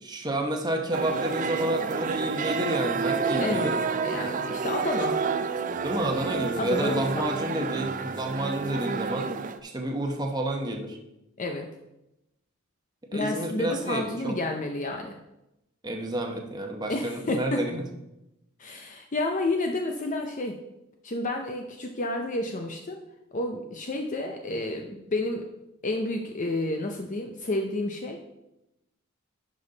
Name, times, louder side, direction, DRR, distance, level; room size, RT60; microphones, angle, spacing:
voice 1, 0.0-3.7 5.8-9.3 9.6-11.0 13.1-14.4 15.8-17.8, right 1 dB, 20° right, 2 dB, 0.9 m, -30 dB
sound 1, 0.9-9.6, right 5 dB, 40° right, 0.4 m, -29 dB
voice 2, 3.4-3.7 4.0-5.2 6.6-7.3 11.4-11.7 13.1-15.1 16.9-17.6 18.6-20.6 21.0-23.0 23.3-25.4 25.8-28.4, left 2 dB, 35° left, 4 dB, 0.6 m, -30 dB
11.0 x 5.3 x 4.0 m, 0.90 s
head